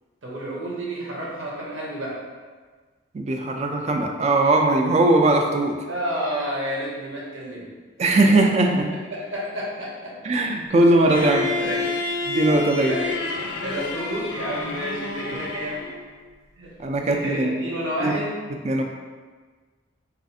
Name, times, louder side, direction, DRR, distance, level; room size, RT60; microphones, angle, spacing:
voice 1, 0.2-2.2 5.9-7.7 8.0-8.3 8.6-10.2 11.1-12.0 12.9-13.2 13.6-15.9 16.6-16.8 17.1-18.5, equal, 80° right, -4 dB, 0.8 m, -30 dB
voice 2, 3.1-5.8 8.0-8.9 10.2-11.5 12.3-13.0 16.8-17.7 18.0-18.1 18.6-18.8, right 2 dB, 35° right, 3 dB, 0.3 m, -19 dB
Bowed string instrument, 11.1-16.0, left 3 dB, 85° left, 0.4 m, -29 dB
4.0 x 2.4 x 2.6 m, 1.4 s
head